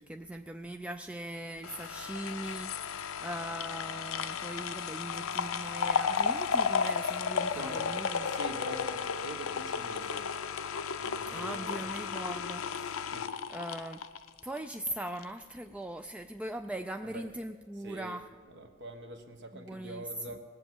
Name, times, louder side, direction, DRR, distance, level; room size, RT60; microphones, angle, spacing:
voice 1, 0.0-8.4 11.3-13.1 13.5-14.0 14.4-18.3 19.5-20.0, right 1 dB, 5° right, 6 dB, 0.3 m, -40 dB
sound 1, 1.6-14.9 15.2-15.3, left 6 dB, 75° left, 0.6 m, -33 dB
voice 2, 7.5-7.9 8.2-10.3 11.0-11.9 13.1-13.3 17.0-17.3 17.8-18.2 18.5-20.4, right 1 dB, 60° right, 5 dB, 1.3 m, -44 dB
18.5 x 7.8 x 7.7 m, 1.5 s
head